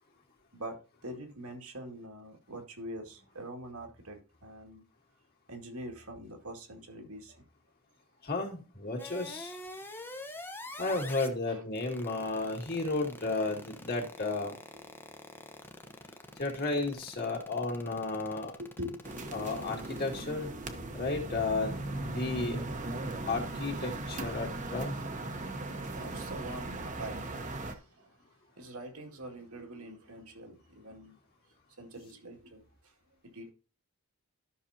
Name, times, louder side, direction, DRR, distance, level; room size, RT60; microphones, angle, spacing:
voice 1, 0.5-4.8 5.5-7.4 11.5-11.6 14.7-14.8 15.8-15.9 18.6-19.0 25.8-31.2 31.8-33.5, right 1 dB, 75° right, 2.3 m, -45 dB
voice 2, 8.2-9.6 10.8-14.5 16.4-18.6 19.3-20.5 20.9-22.6 23.3-24.9, left 3 dB, 45° left, 2.3 m, -33 dB
sound 1, 9.0-11.3 11.8-20.2, left 2 dB, 10° left, 0.9 m, -45 dB
sound 2, 19.0-27.7, right 2 dB, 35° right, 1.0 m, -38 dB
13.0 x 6.2 x 2.8 m
head